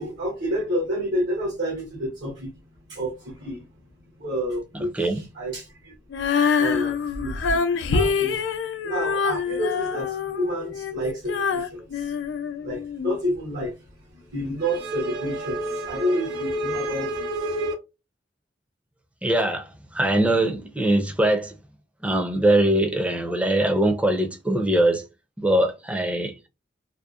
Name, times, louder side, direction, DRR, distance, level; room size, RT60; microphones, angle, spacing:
voice 1, 0.0-2.5 2.9-3.7 4.2-5.9 6.6-8.6 8.8-12.2 12.6-17.7, equal, 70° right, 0.8 m, -29 dB
Female singing, 6.1-13.2, left 5 dB, 80° left, 0.4 m, -25 dB
voice 2, 19.2-21.6 22.0-25.0 25.4-26.5, right 1 dB, 10° right, 0.5 m, -22 dB
2.7 x 2.0 x 2.3 m
head